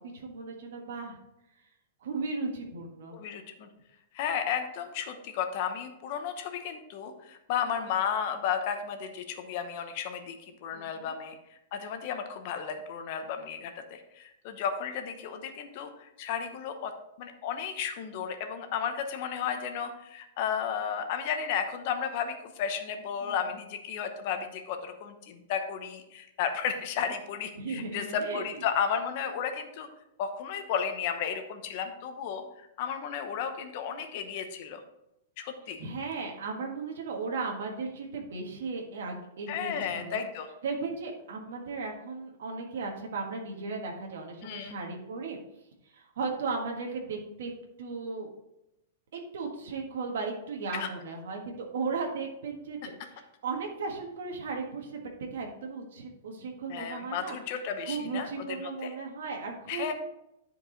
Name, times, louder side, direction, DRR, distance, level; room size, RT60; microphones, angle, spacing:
voice 1, 0.1-1.2 2.0-3.2 10.7-11.1 23.2-23.4 27.6-28.4 35.8-40.2 40.6-45.4 45.9-47.5 47.8-48.3 49.1-55.0 55.3-57.4 57.9-59.9, right 4 dB, 70° right, 1 dB, 1.5 m, -36 dB
voice 2, 3.1-3.7 4.1-16.9 17.2-29.9 30.2-34.8 35.4-35.8 39.5-40.5 44.4-44.8 50.7-50.9 52.8-52.9 56.7-58.9 59.7-59.9, left 7 dB, 40° left, 7 dB, 0.9 m, -33 dB
10.5 x 4.8 x 3.9 m, 0.88 s
supercardioid pair, 170°, 0 cm